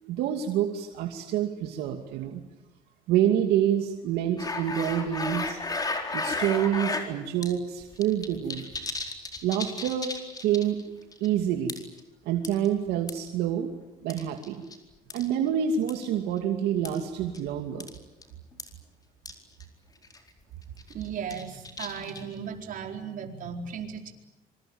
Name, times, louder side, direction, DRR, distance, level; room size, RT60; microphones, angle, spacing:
voice 1, 0.0-2.4 3.1-5.6 6.1-8.7 9.4-10.1 10.4-10.8 11.2-11.8 12.3-13.7 14.0-14.6 15.1-17.9, right 9 dB, 85° right, 4 dB, 2.6 m, -27 dB
sound 1, 4.4-7.1 7.4-7.5 7.8-10.8 11.1-11.3 11.7-12.0 12.4-13.3 14.1-14.8 15.1-15.3 15.9-16.1 16.8-17.0 17.3-17.5 17.8-18.0 18.2-18.3 18.6-18.7 19.3-19.4 19.6-19.7 20.0-20.3 20.8-22.4, left 3 dB, 25° left, 4.5 m, -33 dB
voice 2, 20.9-24.1, right 7 dB, 55° right, 3 dB, 4.6 m, -36 dB
26.5 x 24.5 x 8.9 m, 0.96 s
cardioid pair, 115°, 16 cm